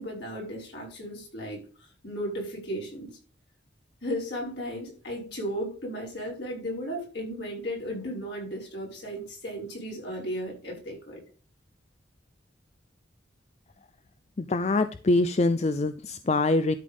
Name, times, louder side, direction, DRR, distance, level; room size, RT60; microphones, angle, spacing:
voice 1, 0.0-3.2 4.0-11.2, equal, 65° left, 5.6 m, -35 dB
voice 2, 14.4-16.8, left 2 dB, 35° left, 0.5 m, -24 dB
12.5 x 5.2 x 5.4 m
head